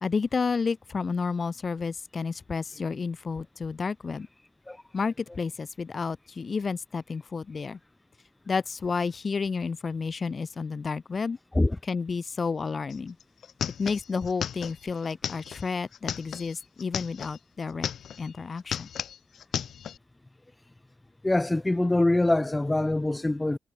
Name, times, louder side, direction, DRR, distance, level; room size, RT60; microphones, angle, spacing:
voice 1, 0.0-4.3 4.9-7.8 8.5-11.4 11.9-13.2 13.8-17.9 18.2-18.9, left 5 dB, 40° left, 1.6 m, -31 dB
sound 1, 12.9-13.0 13.2-17.4 17.7-18.3 18.6-20.0, left 9 dB, 80° left, 1.2 m, -35 dB
voice 2, 21.2-23.6, left 2 dB, 15° left, 1.0 m, -24 dB
wide cardioid pair, 135°, 0 cm